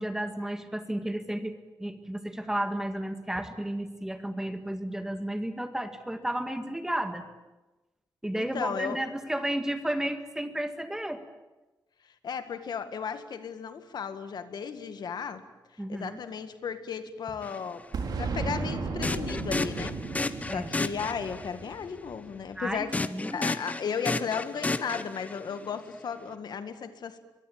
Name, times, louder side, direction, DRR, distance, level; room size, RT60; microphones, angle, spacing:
voice 1, 0.0-1.5 1.8-7.3 8.2-11.2 15.8-16.2 20.5-20.7 22.6-23.5, right 1 dB, 5° right, 8 dB, 1.9 m, -32 dB
voice 2, 8.3-9.0 12.2-15.4 15.7-17.9 18.2-20.0 20.5-22.9 23.3-27.2, left 6 dB, 75° left, 10 dB, 1.9 m, -35 dB
sound 1, 17.4-17.6 19.0-21.5 22.9-25.5, left 3 dB, 20° left, 1.0 m, -32 dB
Boom, 17.9-22.6, right 3 dB, 70° right, 4.1 m, -35 dB
23.5 x 23.0 x 8.7 m, 1.1 s
wide cardioid pair, 160°, 7 cm